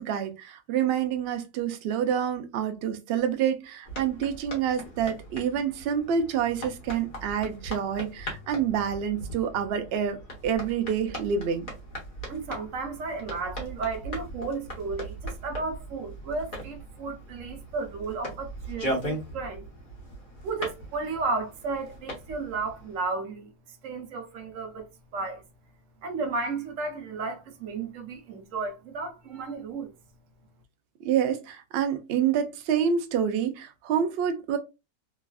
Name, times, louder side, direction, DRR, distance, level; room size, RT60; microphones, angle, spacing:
voice 1, 0.0-11.6 31.0-34.6, right 8 dB, 90° right, 0.5 m, -27 dB
sound 1, 3.8-23.0, right 1 dB, 35° left, 1.1 m, -39 dB
voice 2, 12.3-19.7 20.4-23.5 23.8-24.9 25.1-25.4 26.0-29.9, right 4 dB, 65° right, 1.0 m, -33 dB
3.1 x 2.4 x 2.3 m
omnidirectional pair, 1.6 m